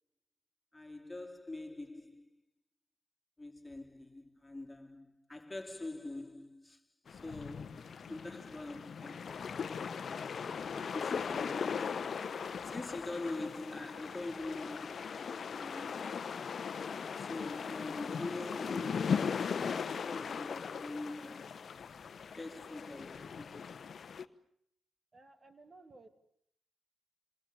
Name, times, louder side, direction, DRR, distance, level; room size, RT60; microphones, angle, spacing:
voice 1, 0.7-2.3 3.4-6.8 7.1-9.9 10.7-16.0 17.2-19.5 20.0-21.6 22.4-23.8, left 2 dB, 15° left, 3.3 m, -44 dB
sound 1, 7.1-24.2, left 6 dB, 55° left, 1.0 m, -38 dB
sound 2, 9.0-20.3, right 6 dB, 75° right, 5.2 m, -70 dB
voice 2, 25.1-26.1, right 2 dB, 40° right, 2.3 m, -56 dB
27.0 x 26.5 x 7.0 m
hypercardioid pair, 40°, 0 cm